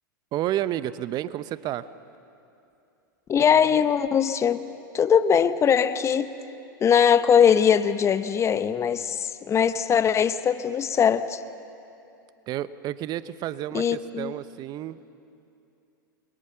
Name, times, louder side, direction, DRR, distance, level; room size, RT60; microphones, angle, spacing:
voice 1, 0.3-1.9 12.5-15.0, right 13 dB, 40° right, 15 dB, 0.8 m, -30 dB
voice 2, 3.3-4.6 4.9-6.3 6.8-11.4 13.7-14.3, left 7 dB, 25° left, 12 dB, 0.9 m, -21 dB
29.0 x 22.5 x 7.0 m, 2.7 s
hypercardioid pair, 95°, 11 cm